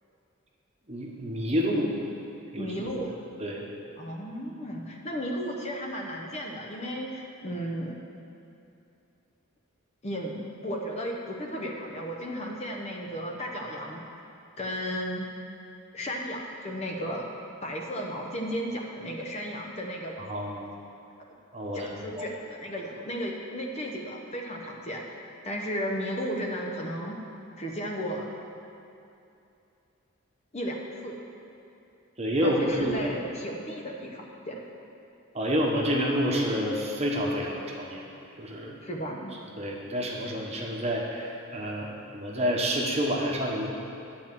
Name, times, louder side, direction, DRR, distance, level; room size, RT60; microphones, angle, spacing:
voice 1, 0.9-1.9 2.5-2.9 3.4-3.6 20.2-20.7 21.5-21.9 22.2-22.3 32.2-33.1 35.3-38.0 38.4-38.8 39.6-43.7, equal, 30° right, -2 dB, 1.1 m, -28 dB
voice 2, 2.6-3.1 4.0-8.0 10.0-14.1 14.6-15.3 15.9-17.3 17.6-20.2 21.7-25.2 25.4-27.2 27.6-28.3 30.5-31.2 32.4-34.6 38.8-39.4, equal, 30° left, 0 dB, 0.8 m, -34 dB
9.8 x 4.5 x 7.4 m, 2.7 s
head